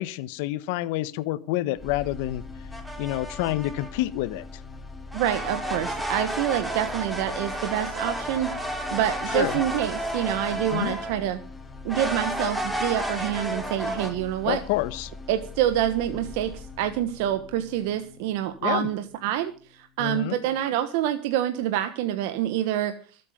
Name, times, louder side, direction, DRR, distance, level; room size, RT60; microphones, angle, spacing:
voice 1, 0.0-2.4 3.0-4.4 9.3-9.5 10.7-11.0 14.4-15.1 18.6-18.9 20.0-20.3, left 17 dB, 80° left, 1.1 m, -28 dB
sound 1, 1.7-19.8, left 3 dB, 15° left, 4.0 m, -42 dB
sound 2, 2.7-3.9 5.1-11.2 11.9-14.1, right 1 dB, 5° right, 5.9 m, -32 dB
voice 2, 5.1-11.4 11.8-14.6 15.3-23.0, right 12 dB, 80° right, 1.3 m, -27 dB
24.0 x 8.4 x 5.1 m
supercardioid pair, 100°, 0 cm